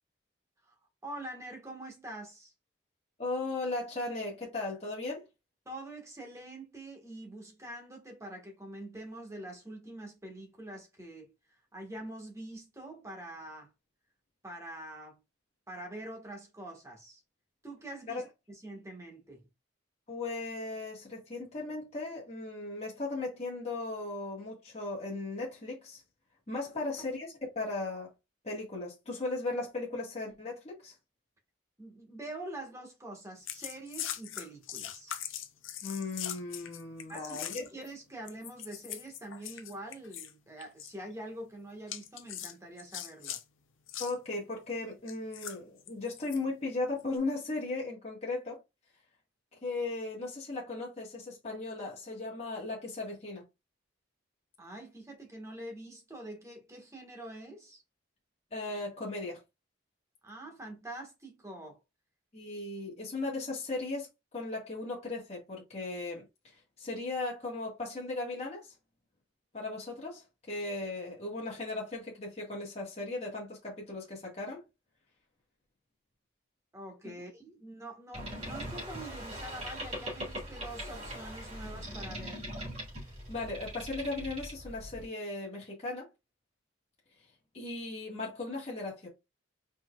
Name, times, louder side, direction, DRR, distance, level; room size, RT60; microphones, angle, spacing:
voice 1, 0.6-2.5 5.6-11.3 11.7-13.7 14.4-15.2 15.7-17.2 17.6-19.5 31.8-35.2 37.1-43.4 54.6-57.8 60.2-61.8 76.7-82.4, right 1 dB, 15° right, 1.4 m, -45 dB
voice 2, 3.2-5.2 18.1-18.2 20.1-26.0 26.5-28.1 28.4-30.9 35.8-37.6 44.0-48.6 49.6-53.4 58.5-59.4 62.3-64.1 64.3-66.2 66.8-68.7 69.5-74.6 83.3-86.1 87.5-89.1, left 2 dB, 35° left, 1.6 m, -37 dB
sound 1, 33.5-37.9 38.3-40.3 40.6-40.9 41.9-43.4 43.9-44.1 45.1-46.4 47.0-47.2, left 11 dB, 90° left, 0.7 m, -41 dB
Boat Water vehicle, 78.1-85.0, equal, 35° right, 3.1 m, -41 dB
4.4 x 4.4 x 2.3 m
head